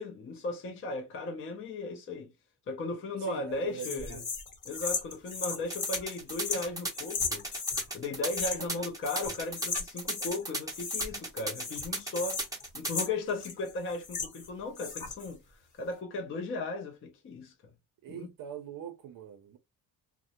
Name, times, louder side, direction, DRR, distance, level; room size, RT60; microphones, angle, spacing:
voice 1, 0.0-2.3 2.7-4.2 4.7-7.4 7.9-12.4 12.7-15.4 15.8-17.5 18.1-18.3, left 3 dB, 35° left, 0.4 m, -36 dB
voice 2, 3.2-4.3 18.0-19.6, right 8 dB, 60° right, 0.5 m, -42 dB
sound 1, 3.8-7.9 8.3-8.8 9.0-10.4 10.7-11.3 11.5-14.5 14.8-15.3, left 5 dB, 50° left, 1.0 m, -36 dB
sound 2, 5.7-13.0, right 2 dB, 10° right, 0.6 m, -36 dB
2.3 x 2.0 x 2.8 m
cardioid pair, 135°, 39 cm